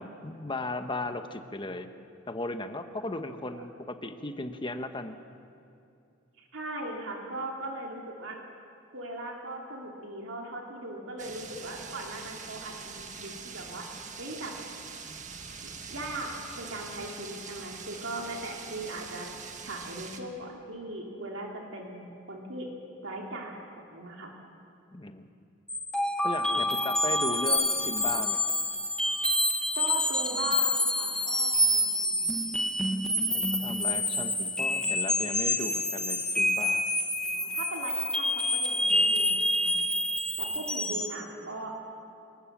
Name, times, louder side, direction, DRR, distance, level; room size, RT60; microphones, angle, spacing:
voice 1, 0.0-1.9 2.3-5.2 24.9-25.2 26.2-28.5 33.2-36.9, left 2 dB, 25° left, 8 dB, 1.1 m, -36 dB
voice 2, 6.4-8.4 8.9-13.9 14.2-14.5 15.6-22.7 23.0-23.6 23.9-24.3 26.5-26.6 29.7-32.4 37.2-39.9 40.4-41.8, right 2 dB, 75° right, 0 dB, 2.9 m, -39 dB
sound 1, 11.2-20.2, right 5 dB, 40° right, 1.7 m, -43 dB
sound 2, 25.7-41.2, left 1 dB, 5° left, 0.9 m, -27 dB
25.0 x 19.0 x 7.3 m, 2.6 s
head